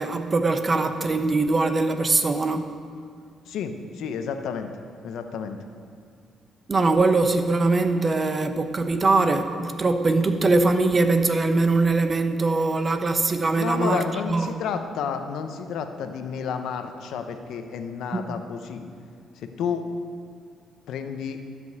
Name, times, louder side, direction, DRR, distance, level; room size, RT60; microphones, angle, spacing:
voice 1, 0.0-2.7 6.7-14.5 18.1-18.4, right 3 dB, 35° right, 8 dB, 0.8 m, -22 dB
voice 2, 3.5-4.7 5.0-5.6 13.6-18.9 19.4-19.8 20.9-21.4, left 6 dB, 80° left, 7 dB, 0.8 m, -31 dB
12.5 x 5.3 x 8.0 m, 2.2 s
cardioid pair, 90°, 0 cm